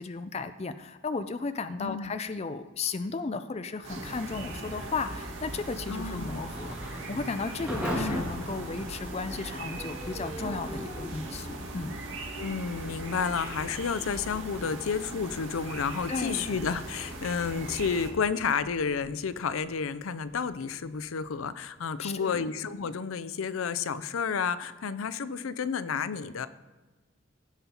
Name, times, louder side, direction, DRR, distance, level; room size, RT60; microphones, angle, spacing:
voice 1, 0.0-12.0 16.1-16.5 22.0-22.5, left 4 dB, 30° left, 11 dB, 0.4 m, -35 dB
voice 2, 1.8-2.1 5.9-6.4 7.9-8.2 12.4-26.5, left 6 dB, 80° left, 14 dB, 0.5 m, -31 dB
sound 1, 3.8-18.1, right 2 dB, 70° right, 2.0 m, -40 dB
Thunder / Rain, 6.2-22.9, equal, 5° right, 2.3 m, -42 dB
Singing, 9.7-15.0, right 2 dB, 35° right, 2.4 m, -47 dB
16.0 x 5.4 x 4.4 m, 1.2 s
head